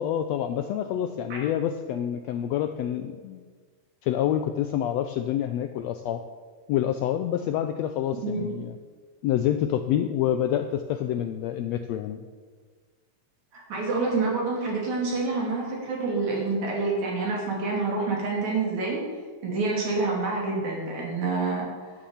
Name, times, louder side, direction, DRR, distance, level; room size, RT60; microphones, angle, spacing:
voice 1, 0.0-3.4 4.0-6.2 6.7-8.8 9.2-12.2, left 10 dB, 80° left, 8 dB, 1.5 m, -27 dB
voice 2, 8.2-8.5 13.5-19.0 19.4-21.7, right 3 dB, 65° right, -2 dB, 4.2 m, -27 dB
11.5 x 9.2 x 7.2 m, 1.5 s
omnidirectional pair, 3.5 m